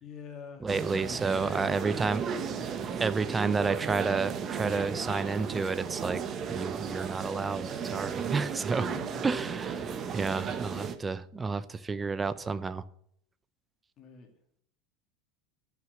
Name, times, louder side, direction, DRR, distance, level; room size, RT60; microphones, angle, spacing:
voice 1, 0.0-0.7 1.0-2.7 8.9-9.4 14.0-14.3, left 6 dB, 35° left, 5 dB, 2.4 m, -47 dB
voice 2, 0.6-2.4 3.0-6.2 6.5-8.9 9.2-12.8, right 4 dB, 15° right, 14 dB, 0.6 m, -31 dB
sound 1, 0.7-11.0, right 7 dB, 30° right, 1.1 m, -35 dB
11.5 x 6.1 x 8.1 m, 0.69 s
supercardioid pair, 140°, 0 cm